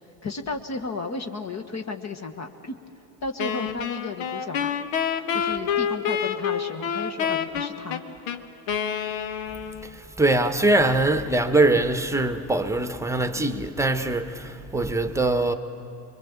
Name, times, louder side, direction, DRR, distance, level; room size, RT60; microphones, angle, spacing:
voice 1, 0.2-2.8 3.2-4.7 5.3-8.0, left 3 dB, 35° left, 1.4 m, -33 dB
Wind instrument woodwind instrument, 3.4-10.0, left 8 dB, 65° left, 1.3 m, -28 dB
voice 2, 9.8-15.5, right 2 dB, 5° right, 1.2 m, -22 dB
24.5 x 22.5 x 7.3 m
hypercardioid pair, 75°, 50 cm